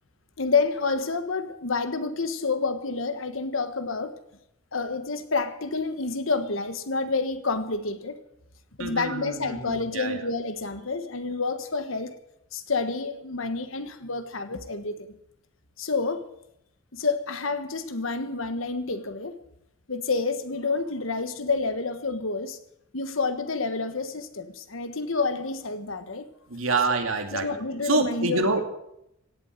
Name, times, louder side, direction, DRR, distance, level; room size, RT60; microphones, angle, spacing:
voice 1, 0.4-4.2 4.7-8.2 8.8-12.1 12.5-15.1 15.8-16.3 16.9-19.4 19.9-22.6 22.9-26.3 27.3-28.6, left 4 dB, 75° left, 1.4 m, -29 dB
voice 2, 8.8-10.3 26.5-27.5 27.8-28.6, right 3 dB, 90° right, 2.5 m, -27 dB
17.0 x 8.3 x 9.2 m
head